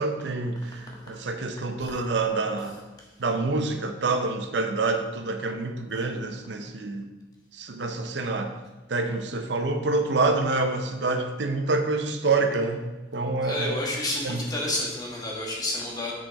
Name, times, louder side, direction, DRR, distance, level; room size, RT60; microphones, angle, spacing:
voice 1, 0.0-2.7 3.2-7.1 7.5-8.5 8.9-13.8 14.2-14.4, right 3 dB, 85° right, 6 dB, 0.7 m, -27 dB
voice 2, 13.4-16.1, left 1 dB, 20° left, -2 dB, 1.6 m, -30 dB
6.6 x 6.3 x 4.2 m, 1.1 s
head